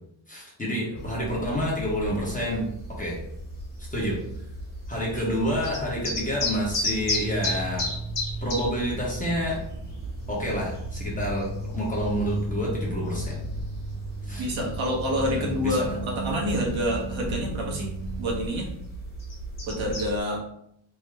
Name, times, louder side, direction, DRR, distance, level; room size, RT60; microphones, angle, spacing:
voice 1, 0.3-2.7 3.0-3.2 3.9-4.2 4.9-7.9 8.4-9.6 10.3-13.4 14.3-14.5 15.4-15.9, equal, 15° left, -5 dB, 0.8 m, -28 dB
sound 1, 1.0-20.2, left 1 dB, 40° left, 1.4 m, -35 dB
sound 2, 7.0-18.5, right 2 dB, 25° right, 0.4 m, -36 dB
voice 2, 14.4-17.9 18.2-18.7 19.6-20.4, equal, 70° right, -2 dB, 0.9 m, -28 dB
3.6 x 2.0 x 3.3 m, 0.75 s
wide cardioid pair, 160°, 48 cm